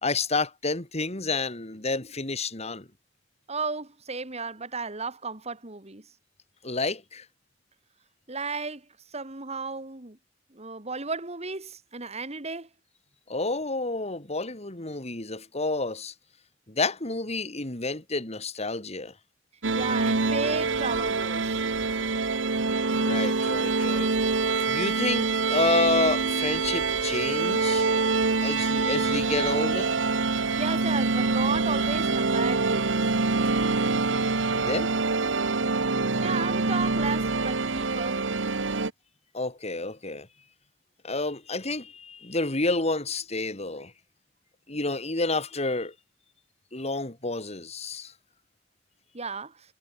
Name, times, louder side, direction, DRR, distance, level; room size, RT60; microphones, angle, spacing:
voice 1, 0.0-2.9 6.6-7.2 13.3-16.1 16.7-19.1 23.0-24.1 24.7-27.8 28.4-29.9 34.5-34.9 39.3-40.3 41.0-43.9 44.7-45.9 46.7-48.1, left 3 dB, 35° left, 3.0 m, -29 dB
voice 2, 3.5-6.0 8.3-8.8 9.1-10.2 10.5-12.7 19.7-21.6 30.4-32.9 36.2-38.2 49.1-49.5, right 4 dB, 35° right, 2.7 m, -34 dB
sound 1, 19.6-38.9, right 3 dB, 80° right, 1.3 m, -25 dB
head